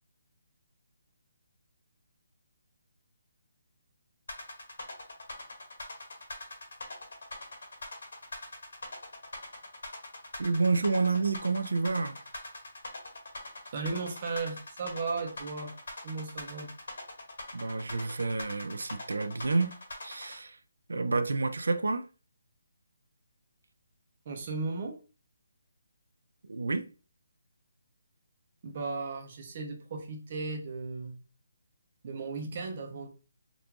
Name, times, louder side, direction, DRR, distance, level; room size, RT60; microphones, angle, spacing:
sound 1, 4.3-20.4, left 2 dB, 70° left, 1.6 m, -42 dB
voice 1, 10.4-12.2 17.5-19.8 20.0-20.6 20.9-22.1 26.5-26.9, right 3 dB, 85° right, 0.5 m, -29 dB
voice 2, 13.7-15.7 16.0-16.7 24.3-25.0 28.6-31.2 32.0-33.1, right 4 dB, 35° right, 0.7 m, -36 dB
3.7 x 2.5 x 2.8 m
hypercardioid pair, 170°, 0 cm